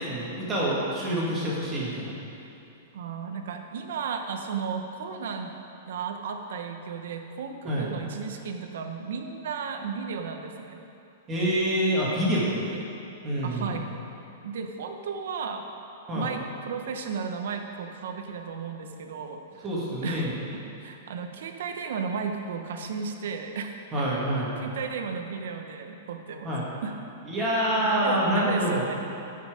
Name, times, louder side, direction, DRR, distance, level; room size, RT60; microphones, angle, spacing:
voice 1, 0.0-2.1 7.6-7.9 11.3-12.5 13.2-13.7 16.1-16.3 19.6-20.3 23.9-24.5 26.4-26.7 27.3-28.9, equal, 20° right, -5 dB, 2.0 m, -26 dB
voice 2, 2.9-5.6 5.8-10.8 12.1-12.9 13.4-13.9 14.4-15.6 16.1-19.7 20.0-20.3 20.8-23.7 24.6-26.5 26.8-26.9 27.7-29.0, right 6 dB, 70° right, 5 dB, 1.0 m, -34 dB
14.0 x 5.8 x 5.1 m, 2.8 s
supercardioid pair, 165°, 0 cm